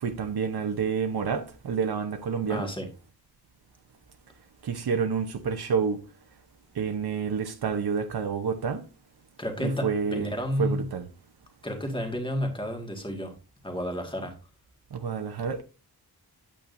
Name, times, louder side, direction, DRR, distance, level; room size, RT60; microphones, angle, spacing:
voice 1, 0.0-2.7 4.6-6.0 6.7-8.8 9.6-11.1 14.9-15.6, right 6 dB, 75° right, 1.0 m, -29 dB
voice 2, 2.5-2.9 9.4-10.9 11.6-13.3 13.6-14.3, equal, 15° left, 1.9 m, -31 dB
8.9 x 8.5 x 2.6 m
wide cardioid pair, 150°, 39 cm